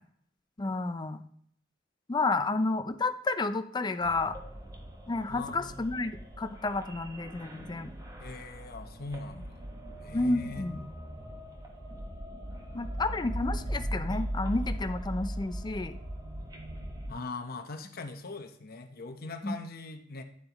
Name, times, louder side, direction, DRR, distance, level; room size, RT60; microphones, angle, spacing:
voice 1, 0.6-1.2 2.1-4.4 5.1-7.9 10.1-10.9 12.7-16.0 19.4-19.5, left 3 dB, 20° left, 10 dB, 0.4 m, -31 dB
sound 1, 4.0-17.1, equal, 20° right, 1.1 m, -39 dB
voice 2, 5.3-5.8 8.2-9.7 10.0-10.7 17.1-20.2, left 3 dB, 50° left, 6 dB, 0.9 m, -41 dB
9.8 x 7.4 x 3.0 m, 0.65 s
head